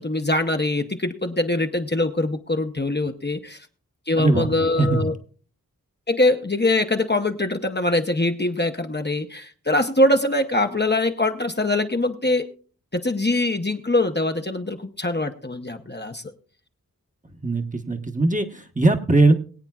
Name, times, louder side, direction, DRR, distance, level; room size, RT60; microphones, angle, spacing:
voice 1, 0.0-3.6 4.1-5.1 6.1-12.5 12.9-16.2, left 2 dB, 30° left, 5 dB, 0.9 m, -23 dB
voice 2, 4.2-5.1 17.4-19.3, right 2 dB, 20° right, 4 dB, 1.1 m, -20 dB
22.5 x 8.7 x 2.4 m, 0.40 s
wide cardioid pair, 65°, 34 cm